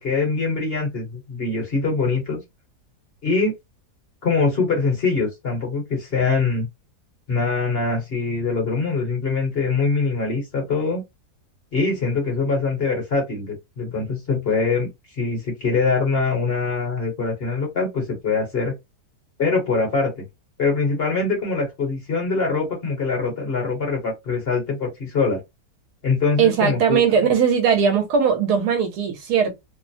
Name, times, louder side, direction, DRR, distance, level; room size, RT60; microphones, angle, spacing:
voice 1, 0.0-2.4 3.2-3.5 4.2-6.7 7.3-11.0 11.7-14.9 15.2-18.7 19.4-20.2 20.6-25.4 26.0-27.0, left 4 dB, 45° left, 1.1 m, -23 dB
voice 2, 26.4-29.5, right 7 dB, 75° right, 1.3 m, -19 dB
3.0 x 2.0 x 2.6 m
omnidirectional pair, 1.7 m